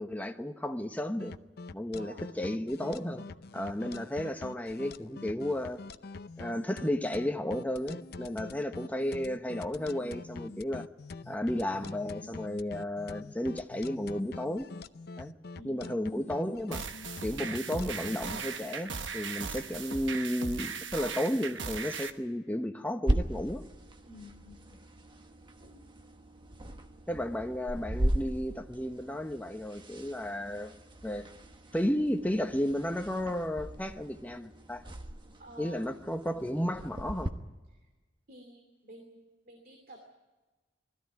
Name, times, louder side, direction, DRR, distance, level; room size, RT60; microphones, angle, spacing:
voice 1, 0.0-1.3 1.7-3.2 3.5-5.8 6.4-10.9 11.3-14.7 15.2-15.3 15.6-16.8 17.2-23.6 27.1-30.7 31.0-31.3 31.7-34.8 35.6-37.3, left 1 dB, 10° left, 1.0 m, -33 dB
sound 1, 1.2-18.6, left 3 dB, 55° left, 0.6 m, -44 dB
voice 2, 1.9-2.3 15.5-16.1 24.0-24.9 25.6-25.8 35.4-35.8 37.7-37.9 38.3-40.0, equal, 50° right, 2.6 m, -52 dB
sound 2, 16.7-22.1, right 5 dB, 75° right, 1.2 m, -38 dB
sound 3, 23.1-37.3, right 1 dB, 25° right, 1.2 m, -37 dB
20.5 x 14.0 x 9.4 m
head